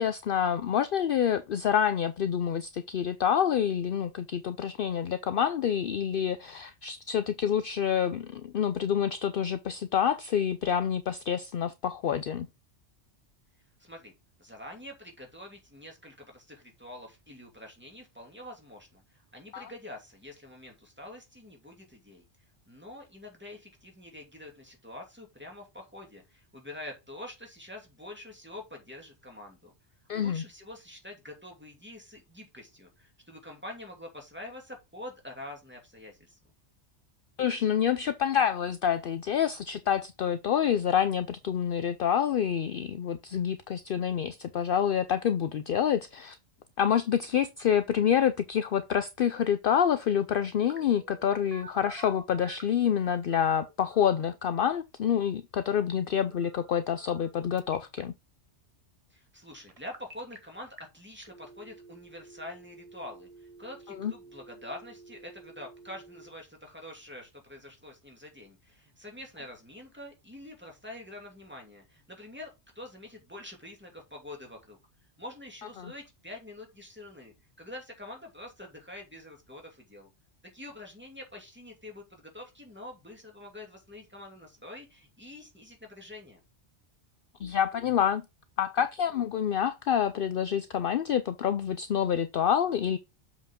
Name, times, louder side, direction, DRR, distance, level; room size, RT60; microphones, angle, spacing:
voice 1, 0.0-12.5 19.5-19.6 30.1-30.4 37.4-46.4 46.8-58.1 64.0-64.1 75.8-75.9 87.4-88.2 88.6-93.0, left 8 dB, 60° left, 0.7 m, -27 dB
voice 2, 13.8-14.1 14.4-22.2 22.7-29.7 30.2-36.4 59.1-74.8 75.2-80.1 80.5-86.4, left 1 dB, 10° right, 2.6 m, -46 dB
Telephone, 50.7-52.8 53.3-54.3 56.3-57.3 57.6-58.0 59.7-60.4 60.8-60.9 61.2-66.3, right 4 dB, 30° right, 1.2 m, -51 dB
7.2 x 5.4 x 3.7 m
omnidirectional pair, 1.2 m